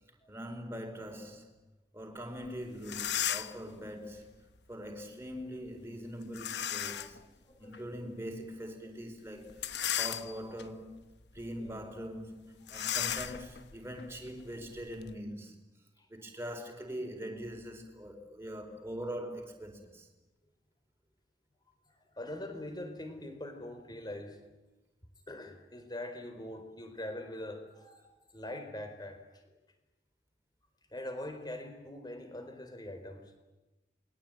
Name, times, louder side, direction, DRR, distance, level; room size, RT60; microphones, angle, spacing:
voice 1, 0.3-1.5 1.9-4.3 4.7-7.2 7.6-9.7 9.9-11.0 11.3-15.5 16.1-20.1, equal, 15° right, 4.6 m, -42 dB
sound 1, 2.4-2.5 2.8-3.7 6.3-7.2 7.7-7.8 9.5-10.6 11.2-11.4 11.7-11.8 12.7-15.1, left 10 dB, 65° left, 1.1 m, -35 dB
voice 2, 7.5-7.9 11.6-11.7 22.1-24.4 25.3-28.0 28.3-29.2 30.9-33.2, left 1 dB, 25° left, 4.2 m, -43 dB
28.0 x 22.5 x 9.2 m
head